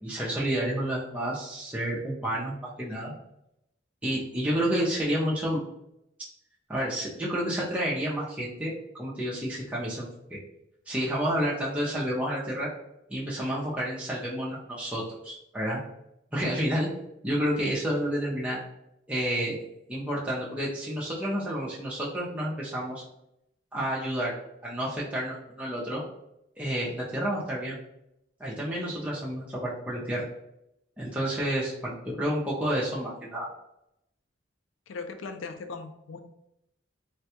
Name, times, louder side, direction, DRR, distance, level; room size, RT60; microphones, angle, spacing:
voice 1, 0.0-3.1 4.0-5.6 6.7-10.4 10.9-12.7 13.1-15.8 16.3-16.9 17.2-18.6 19.1-19.6 19.9-23.0 23.7-24.3 24.6-26.0 26.6-27.8 28.4-30.3 31.0-33.5, equal, 5° right, -6 dB, 0.5 m, -30 dB
voice 2, 34.9-36.2, left 4 dB, 85° left, 7 dB, 0.4 m, -38 dB
3.3 x 2.2 x 2.8 m, 0.81 s
head